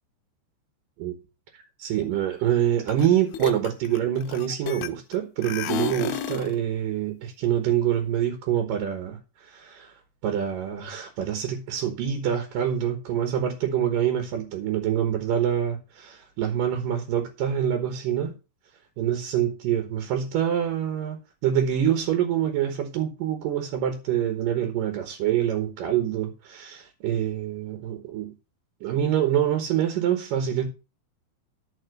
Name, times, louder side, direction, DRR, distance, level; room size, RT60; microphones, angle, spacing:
voice 1, 1.8-9.9 10.2-18.3 19.0-28.3 28.8-30.7, right 10 dB, 65° right, 2.4 m, -26 dB
sound 1, 2.9-3.1 3.3-5.1 5.4-6.5, left 10 dB, 80° left, 2.4 m, -31 dB
11.5 x 4.5 x 6.5 m
omnidirectional pair, 5.0 m